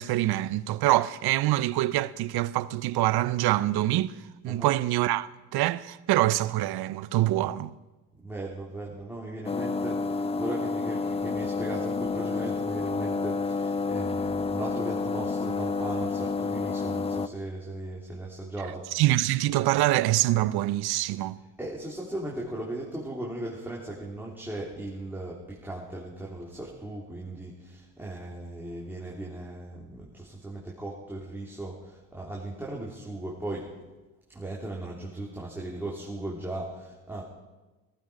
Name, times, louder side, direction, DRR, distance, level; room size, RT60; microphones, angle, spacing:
voice 1, 0.0-4.1 4.4-7.7 18.9-21.4, right 16 dB, 60° right, 0.7 m, -25 dB
voice 2, 8.2-19.0 21.6-33.7 34.3-37.2, right 1 dB, 5° right, 3.4 m, -37 dB
sound 1, 9.4-17.3, left 4 dB, 15° left, 0.4 m, -29 dB
16.5 x 14.5 x 5.2 m
supercardioid pair, 70°, 43 cm